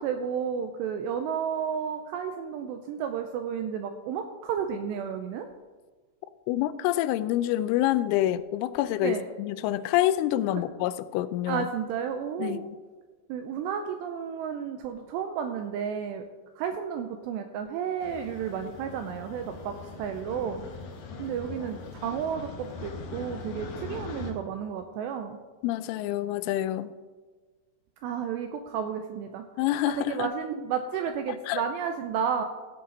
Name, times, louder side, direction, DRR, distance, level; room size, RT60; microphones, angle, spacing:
voice 1, 0.0-5.5 9.0-9.3 10.6-10.7 11.5-12.6 13.3-16.2 16.6-20.6 21.2-25.4 28.0-29.5 29.9-32.4, right 7 dB, 85° right, 6 dB, 2.5 m, -32 dB
voice 2, 6.5-11.7 12.4-12.8 25.6-26.9 29.6-30.3 31.5-31.6, left 13 dB, 90° left, 14 dB, 3.1 m, -27 dB
sound 1, 18.0-24.3, left 4 dB, 65° left, 2.5 m, -41 dB
15.5 x 8.6 x 3.9 m, 1.4 s
omnidirectional pair, 5.6 m